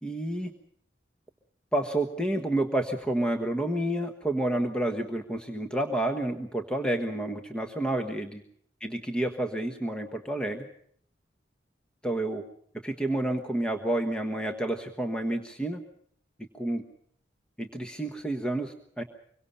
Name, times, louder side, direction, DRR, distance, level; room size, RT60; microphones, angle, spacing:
voice 1, 0.0-0.5 1.7-8.4 8.8-10.7 12.0-12.4 12.8-15.8 16.5-16.8 17.6-19.0, right 1 dB, 5° left, 3 dB, 1.3 m, -29 dB
25.5 x 23.0 x 5.5 m, 0.65 s
head